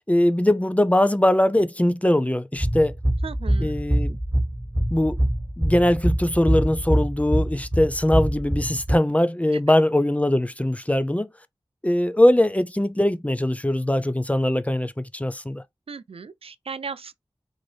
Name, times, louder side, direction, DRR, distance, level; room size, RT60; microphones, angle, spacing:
voice 1, 0.1-2.9 3.6-4.2 4.9-5.2 5.6-11.3 11.8-15.6, left 1 dB, 15° left, 0.5 m, -21 dB
sound 1, 2.6-8.9, right 1 dB, 25° right, 1.5 m, -24 dB
voice 2, 3.2-3.7 15.9-17.1, right 5 dB, 70° right, 0.4 m, -36 dB
3.9 x 2.6 x 3.2 m
wide cardioid pair, 40°, 10 cm